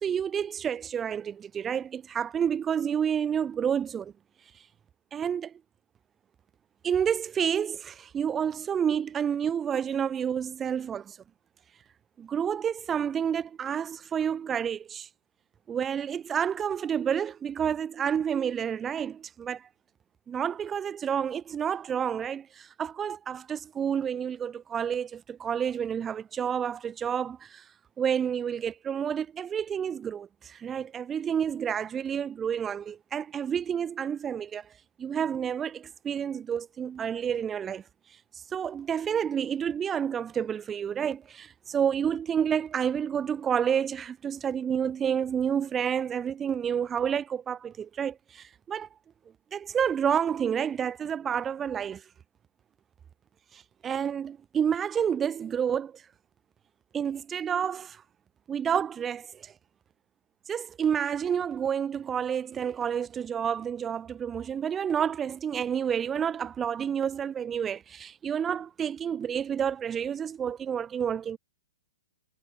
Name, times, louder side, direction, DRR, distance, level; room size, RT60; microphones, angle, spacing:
voice 1, 0.0-4.1 5.1-5.5 6.8-11.2 12.2-15.1 15.7-19.7 20.3-27.6 28.0-34.7 35.0-37.8 38.3-48.9 49.5-52.0 53.5-56.0 56.9-58.0 58.5-59.5 60.5-71.4, right 8 dB, 15° right, 2.4 m, -29 dB
hypercardioid pair, 135°, 0 cm